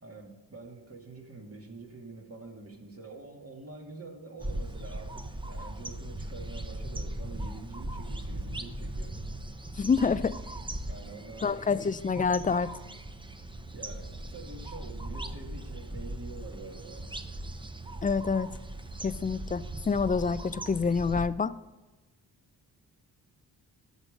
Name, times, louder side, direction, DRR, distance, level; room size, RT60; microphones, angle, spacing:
voice 1, 0.0-9.2 10.9-11.8 13.7-17.3, right 3 dB, 30° right, 2 dB, 2.2 m, -46 dB
sound 1, 4.4-21.3, right 1 dB, 10° right, 0.8 m, -39 dB
voice 2, 9.8-10.4 11.4-12.7 18.0-18.5 19.0-21.5, left 5 dB, 20° left, 17 dB, 0.4 m, -27 dB
12.5 x 5.3 x 6.5 m, 1.2 s
supercardioid pair, 45°, 44 cm